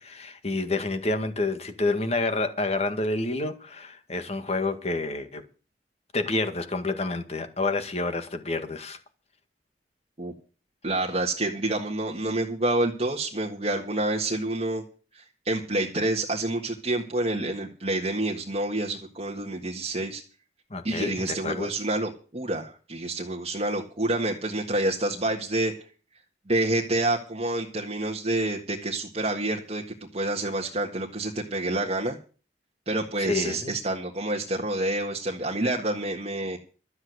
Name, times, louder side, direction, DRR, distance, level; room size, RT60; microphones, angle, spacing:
voice 1, 0.0-5.4 6.1-9.0 20.7-21.7 33.2-33.7, left 2 dB, 35° left, 1.9 m, -28 dB
voice 2, 10.8-14.8 15.1-20.2 20.8-25.7 26.5-29.8 30.1-32.2 32.9-36.6, right 2 dB, 35° right, 1.7 m, -28 dB
13.0 x 7.9 x 8.1 m
head